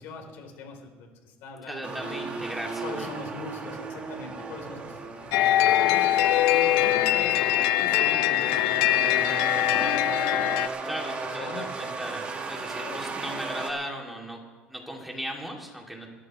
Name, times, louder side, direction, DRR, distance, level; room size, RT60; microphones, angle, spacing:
voice 1, 0.0-2.4 2.8-10.6 11.4-11.9 12.8-13.1 16.0-16.1, left 3 dB, 70° left, 2 dB, 3.2 m, -42 dB
voice 2, 1.7-3.1 10.8-14.4 14.7-16.1, equal, ahead, 0 dB, 2.4 m, -37 dB
sound 1, 1.8-13.7, right 4 dB, 30° right, 1.5 m, -36 dB
sound 2, 5.3-10.7, left 13 dB, 90° left, 0.5 m, -22 dB
21.0 x 14.0 x 3.1 m, 1.4 s
cardioid pair, 140°, 4 cm